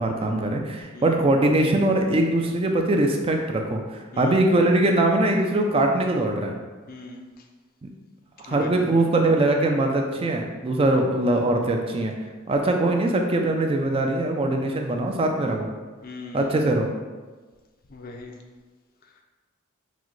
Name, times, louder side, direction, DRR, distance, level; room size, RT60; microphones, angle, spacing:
voice 1, 0.0-6.5 7.8-7.9 8.4-12.1 12.5-15.7 16.3-16.9, right 2 dB, 25° right, 2 dB, 0.3 m, -22 dB
voice 2, 6.9-7.2 8.5-8.7 16.0-16.4 17.9-18.3, left 3 dB, 45° left, 3 dB, 0.4 m, -39 dB
6.0 x 2.1 x 3.1 m, 1.3 s
head